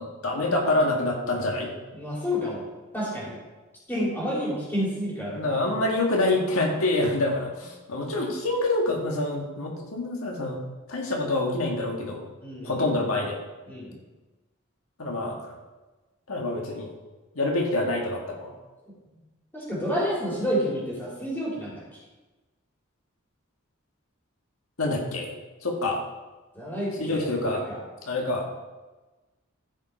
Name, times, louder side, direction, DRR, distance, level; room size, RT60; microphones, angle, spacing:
voice 1, 0.0-1.7 5.3-10.6 10.9-12.2 12.6-13.4 15.0-15.5 16.3-16.9 17.4-18.6 24.8-25.4 25.6-26.0 27.0-27.6 28.1-28.6, left 2 dB, 80° left, 0 dB, 1.7 m, -26 dB
voice 2, 1.9-2.7 2.9-3.4 3.9-5.5 12.4-12.8 13.7-14.0 19.5-21.8 26.5-27.8, equal, 10° left, -6 dB, 3.0 m, -29 dB
14.5 x 5.3 x 4.4 m, 1.2 s
head